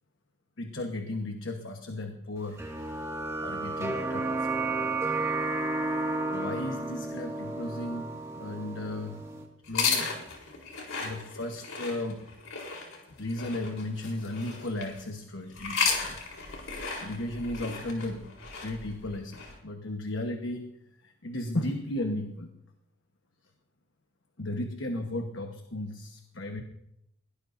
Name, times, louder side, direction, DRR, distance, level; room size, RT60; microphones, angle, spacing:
voice 1, 0.6-3.0 3.4-5.1 6.3-9.2 9.7-10.1 11.0-12.2 13.1-18.3 18.6-20.7 21.0-22.5 24.4-26.6, left 1 dB, 60° left, 4 dB, 1.2 m, -35 dB
sound 1, 2.6-9.4, right 2 dB, 15° right, 2.0 m, -32 dB
sound 2, 9.6-15.0 15.5-19.5, left 5 dB, 85° left, 4.0 m, -34 dB
21.5 x 17.5 x 2.7 m, 0.79 s
head